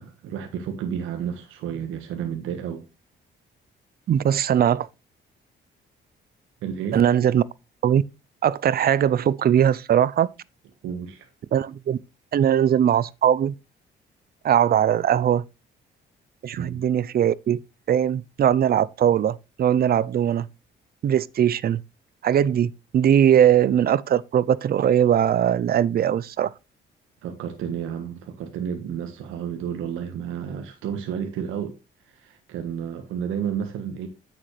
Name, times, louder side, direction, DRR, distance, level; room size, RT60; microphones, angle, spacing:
voice 1, 0.0-2.8 6.6-7.0 10.8-11.3 16.6-16.8 27.2-31.8 32.1-34.1, right 8 dB, 90° right, 1.5 m, -31 dB
voice 2, 4.1-4.9 6.9-7.4 7.8-8.0 8.4-10.3 11.5-12.0 12.3-13.5 14.4-15.4 16.4-17.6 17.9-20.5 21.0-21.8 22.2-26.5, right 9 dB, 50° right, 0.5 m, -20 dB
9.0 x 7.3 x 3.2 m
cardioid pair, 90°, 20 cm